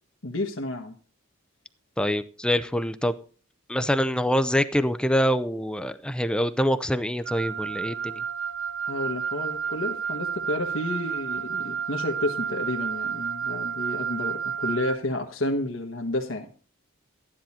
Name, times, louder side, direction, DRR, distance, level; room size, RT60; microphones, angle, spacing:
voice 1, 0.2-1.0 8.8-16.5, left 1 dB, 70° left, 1.3 m, -30 dB
voice 2, 2.0-3.2 3.7-8.2, equal, 5° left, 0.5 m, -25 dB
Wind instrument woodwind instrument, 7.2-15.0, right 7 dB, 70° right, 0.6 m, -31 dB
13.5 x 10.5 x 4.3 m
head